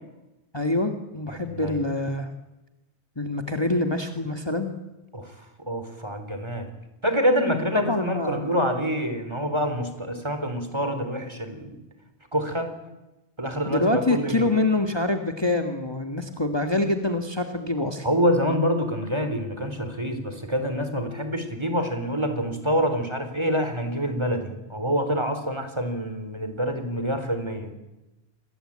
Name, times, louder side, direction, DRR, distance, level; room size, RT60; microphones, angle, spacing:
voice 1, 0.5-2.3 3.2-4.7 7.7-8.5 13.7-18.1, left 2 dB, 20° left, 5 dB, 1.8 m, -25 dB
voice 2, 1.3-1.8 5.1-6.7 7.0-11.8 12.3-12.7 13.4-14.5 18.0-27.7, equal, 25° right, 8 dB, 3.8 m, -26 dB
28.0 x 22.0 x 8.8 m, 1.0 s
omnidirectional pair, 1.2 m